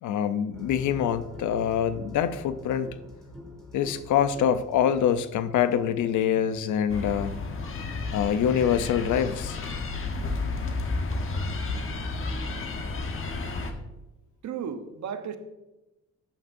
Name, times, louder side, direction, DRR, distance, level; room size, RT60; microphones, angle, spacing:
voice 1, 0.0-2.9 3.7-7.3 8.1-9.6, left 9 dB, 75° left, 12 dB, 0.7 m, -25 dB
sound 1, 0.5-6.8, left 2 dB, ahead, 3.4 m, -45 dB
sound 2, 6.9-13.7, left 3 dB, 45° left, 1.2 m, -31 dB
voice 2, 14.4-15.4, right 7 dB, 65° right, 8 dB, 1.0 m, -34 dB
13.0 x 9.0 x 2.6 m, 1.0 s
cardioid pair, 90°, 30 cm